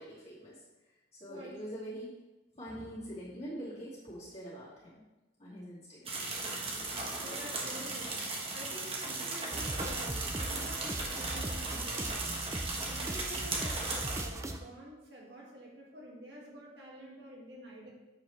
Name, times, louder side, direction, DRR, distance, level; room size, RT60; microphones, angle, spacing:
voice 1, 0.0-2.1 2.5-5.0 5.4-6.2 7.2-7.4, equal, 35° left, -10 dB, 2.5 m, -44 dB
sound 1, 6.1-14.2, right 3 dB, 30° right, 1.2 m, -37 dB
voice 2, 7.2-12.3 12.8-17.9, equal, 65° right, -3 dB, 1.9 m, -48 dB
sound 2, 9.5-14.6, right 1 dB, 15° right, 0.4 m, -39 dB
8.1 x 6.6 x 3.2 m, 1.1 s
head